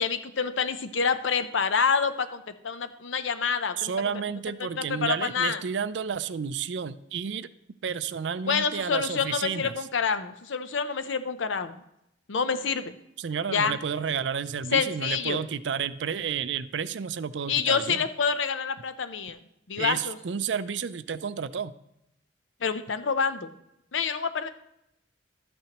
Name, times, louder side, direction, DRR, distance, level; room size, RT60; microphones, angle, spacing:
voice 1, 0.0-3.9 4.8-5.6 8.5-11.8 12.3-13.0 13.5-13.8 14.7-15.4 17.5-19.4 19.7-20.2 22.6-23.5 23.9-24.5, left 6 dB, 85° left, 11 dB, 0.7 m, -27 dB
voice 2, 3.8-7.5 7.8-9.9 13.2-18.1 19.8-21.7, right 7 dB, 70° right, 14 dB, 0.4 m, -31 dB
12.0 x 8.7 x 3.0 m, 0.81 s
head